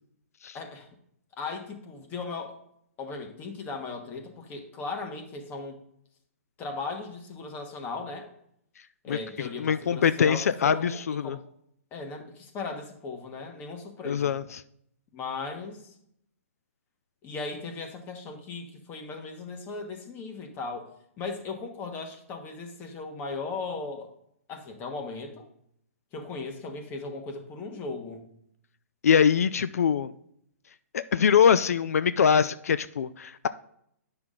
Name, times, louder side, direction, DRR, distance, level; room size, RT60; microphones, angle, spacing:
voice 1, 0.5-0.9 1.4-2.6 3.0-5.8 6.6-8.3 9.0-11.4 11.9-14.4 15.1-15.9 17.2-20.9 21.2-24.1 24.5-25.4 26.1-28.2, left 4 dB, 25° left, 4 dB, 1.3 m, -37 dB
voice 2, 9.6-11.4 14.0-14.4 29.0-30.1 30.9-33.5, left 7 dB, 85° left, 14 dB, 0.4 m, -23 dB
9.7 x 6.0 x 3.8 m, 0.71 s
hypercardioid pair, 150°, 8 cm